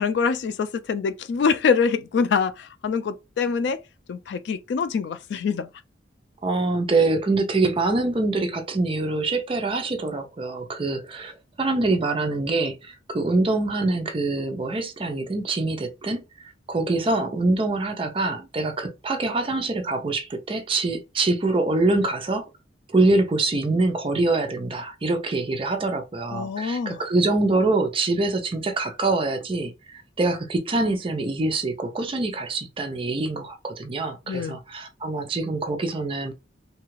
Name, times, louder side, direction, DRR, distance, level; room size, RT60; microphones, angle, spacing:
voice 1, 0.0-3.8 4.1-5.7 26.3-27.0 34.3-34.6, left 5 dB, 70° left, 0.3 m, -25 dB
voice 2, 6.4-22.5 22.9-36.3, right 2 dB, 30° right, 0.5 m, -25 dB
2.8 x 2.3 x 3.0 m
head